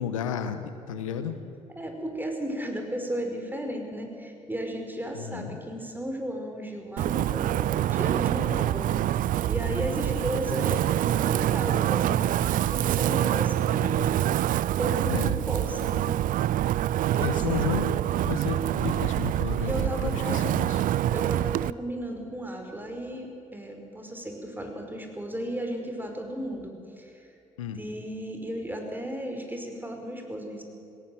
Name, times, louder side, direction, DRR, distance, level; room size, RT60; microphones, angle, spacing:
voice 1, 0.0-1.4 5.1-5.6 15.1-15.4 17.2-20.8 27.6-27.8, left 8 dB, 85° left, 10 dB, 0.9 m, -32 dB
voice 2, 1.7-14.0 14.8-16.1 17.1-17.7 19.6-20.4 21.1-27.3 27.7-30.6, equal, 10° right, 4 dB, 5.0 m, -35 dB
Wind, 7.0-21.7, right 12 dB, 55° right, 0.4 m, -26 dB
19.5 x 17.5 x 7.9 m, 2.8 s
hypercardioid pair, 45°, 16 cm